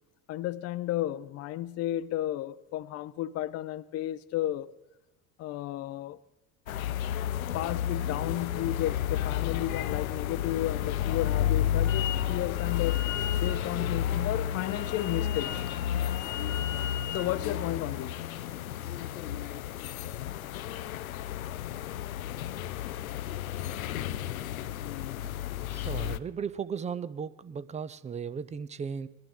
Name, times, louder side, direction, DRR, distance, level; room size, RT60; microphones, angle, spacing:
voice 1, 0.3-4.7 5.4-6.2 7.5-15.6 17.1-18.2, left 13 dB, 40° left, 0.5 m, -33 dB
sound 1, 6.7-26.2, left 11 dB, 90° left, 0.5 m, -32 dB
Wind instrument woodwind instrument, 11.9-12.3 12.5-17.3, left 10 dB, 65° left, 1.2 m, -40 dB
voice 2, 25.7-29.1, right 6 dB, 20° right, 0.4 m, -36 dB
19.5 x 11.5 x 3.8 m
hypercardioid pair, 70°, 41 cm